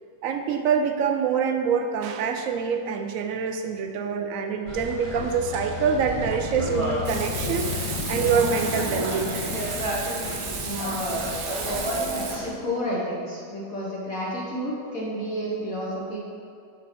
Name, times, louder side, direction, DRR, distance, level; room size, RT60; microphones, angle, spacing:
voice 1, 0.2-7.7 8.1-9.4, right 6 dB, 75° right, 5 dB, 0.7 m, -25 dB
sound 1, 4.7-12.5, right 1 dB, 20° right, 1.0 m, -32 dB
Motorcycle, 4.8-11.5, left 10 dB, 80° left, 1.2 m, -35 dB
Frying (food), 7.0-12.4, right 5 dB, 60° right, 1.3 m, -34 dB
voice 2, 10.6-11.1 12.1-16.2, equal, 50° left, -6 dB, 1.5 m, -31 dB
12.5 x 4.2 x 4.2 m, 2.4 s
omnidirectional pair, 2.0 m